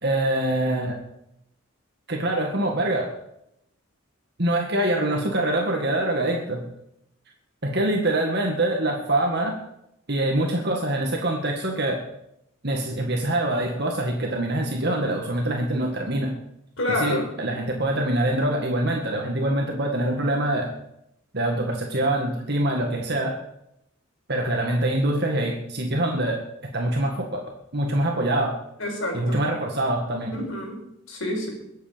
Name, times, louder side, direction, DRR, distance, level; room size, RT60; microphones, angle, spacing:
voice 1, 0.0-1.0 2.1-3.1 4.4-6.6 7.6-9.5 10.1-12.0 12.6-16.3 16.9-20.7 21.3-23.3 24.3-26.4 26.7-27.4 27.7-28.5 29.1-30.4, right 1 dB, 50° right, 1 dB, 2.0 m, -24 dB
voice 2, 16.8-17.3 28.8-29.4 30.3-31.5, left 1 dB, 65° left, 2 dB, 4.9 m, -28 dB
22.5 x 8.5 x 5.2 m, 0.79 s
head